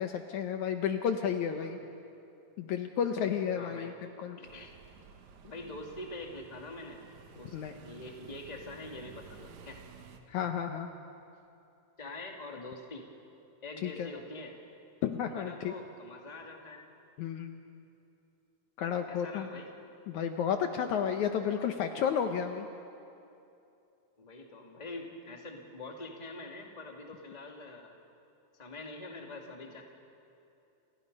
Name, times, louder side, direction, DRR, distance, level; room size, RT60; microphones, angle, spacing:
voice 1, 0.0-1.8 2.6-3.9 4.2-4.4 7.5-7.7 10.3-10.9 13.8-14.1 15.0-15.7 17.2-17.5 18.8-19.5 20.1-22.7, left 8 dB, 70° left, 6 dB, 2.1 m, -32 dB
voice 2, 3.5-3.9 4.4-4.7 5.4-7.0 7.3-9.8 12.0-13.1 13.6-14.6 15.3-16.8 19.1-19.7 24.2-27.9 28.5-29.8, left 2 dB, 15° left, 1 dB, 2.0 m, -45 dB
sound 1, 4.4-10.2, right 6 dB, 65° right, 2.6 m, -53 dB
29.5 x 28.5 x 5.5 m, 2.7 s
omnidirectional pair, 3.9 m